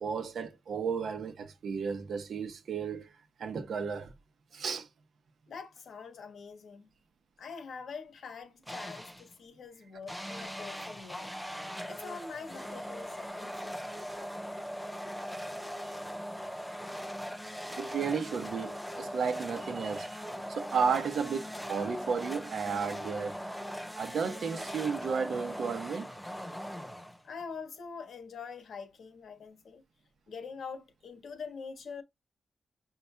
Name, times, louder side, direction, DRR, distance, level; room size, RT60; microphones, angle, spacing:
voice 1, 0.0-4.1 4.5-4.9 17.8-20.1 20.5-23.5 24.0-26.2, right 6 dB, 70° right, 0.9 m, -33 dB
voice 2, 5.5-6.9 7.4-11.3 11.9-13.8 27.2-29.8 30.3-32.0, left 5 dB, 70° left, 1.3 m, -44 dB
sound 1, 8.7-9.3 10.1-27.4, equal, ahead, 0.5 m, -40 dB
5.5 x 4.1 x 2.2 m
wide cardioid pair, 170°, 0 cm